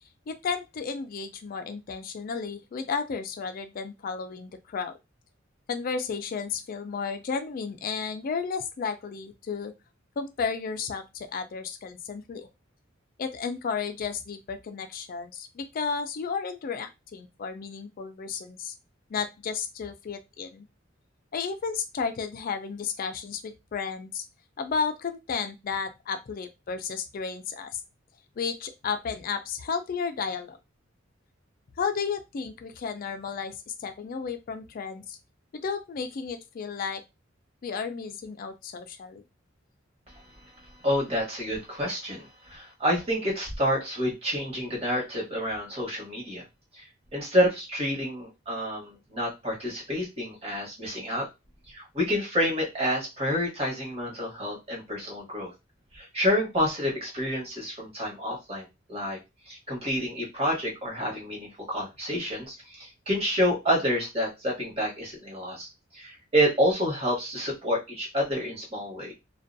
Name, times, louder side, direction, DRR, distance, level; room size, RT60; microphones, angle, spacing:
voice 1, 0.3-4.9 5.7-9.7 10.2-12.5 13.2-18.7 19.1-20.7 21.3-24.2 24.6-27.8 28.4-30.6 31.8-35.2 35.5-37.0 37.6-39.2, left 5 dB, 45° left, 8 dB, 0.3 m, -33 dB
voice 2, 40.8-46.4 46.7-51.3 51.7-55.5 55.9-59.2 59.4-65.7 65.9-69.1, equal, 30° right, -3 dB, 1.1 m, -28 dB
2.4 x 2.2 x 2.5 m, 0.24 s
head